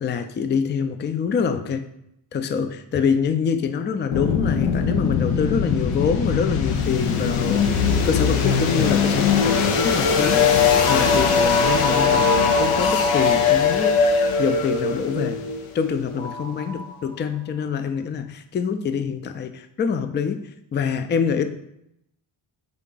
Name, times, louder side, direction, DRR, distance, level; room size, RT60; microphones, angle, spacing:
voice 1, 0.0-1.9 2.3-10.4 10.9-15.4 15.7-20.4 20.7-21.4, left 6 dB, 25° left, 9 dB, 0.3 m, -25 dB
sound 1, 4.1-16.9, left 5 dB, 85° left, 0.6 m, -20 dB
3.6 x 3.5 x 3.9 m, 0.78 s
cardioid pair, 55°, 49 cm